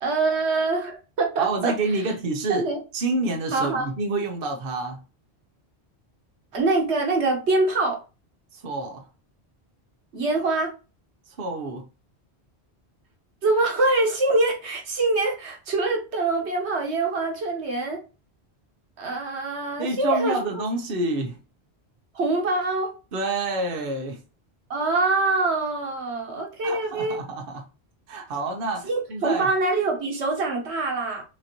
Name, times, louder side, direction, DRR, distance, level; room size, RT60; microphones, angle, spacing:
voice 1, 0.0-1.7 2.5-2.8 3.5-3.9 6.5-8.0 10.1-10.7 13.4-18.0 19.0-20.5 22.1-22.9 24.7-27.2 28.8-31.2, right 3 dB, 90° right, 1.4 m, -24 dB
voice 2, 1.4-2.7 2.9-5.0 8.5-9.0 11.3-11.8 19.8-21.4 23.1-24.2 26.6-27.6 28.1-29.5, right 2 dB, 60° right, 1.0 m, -28 dB
6.1 x 2.6 x 2.9 m
omnidirectional pair, 1.1 m